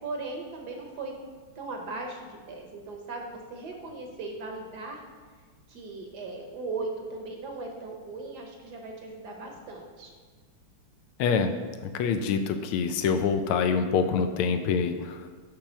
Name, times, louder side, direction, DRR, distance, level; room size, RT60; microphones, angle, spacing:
voice 1, 0.0-1.2 1.6-5.0 5.7-10.1, right 3 dB, 60° right, 2 dB, 1.2 m, -38 dB
voice 2, 11.2-11.5 11.8-15.3, left 6 dB, 90° left, 8 dB, 1.5 m, -26 dB
8.6 x 3.4 x 6.1 m, 1.5 s
omnidirectional pair, 2.3 m